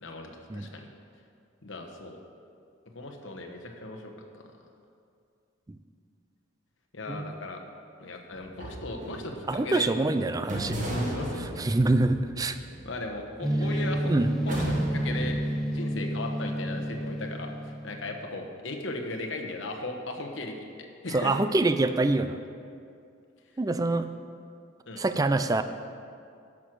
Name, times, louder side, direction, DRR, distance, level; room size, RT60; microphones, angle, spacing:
voice 1, 0.0-0.9 1.6-2.2 2.9-4.4 6.9-7.6 8.0-9.9 10.8-11.6 12.8-14.1 14.5-21.4 24.9-25.1, left 2 dB, 65° left, 2 dB, 1.1 m, -37 dB
voice 2, 7.1-7.4 9.5-10.8 11.6-12.6 14.1-14.5 21.1-22.4 23.6-24.1 25.0-25.6, right 2 dB, 20° right, 10 dB, 0.3 m, -25 dB
sound 1, 8.3-9.8 10.5-13.9 14.5-15.5, right 1 dB, 40° right, 1.3 m, -35 dB
sound 2, 13.4-18.3, equal, ahead, 1.0 m, -30 dB
11.0 x 6.2 x 6.1 m, 2.4 s
head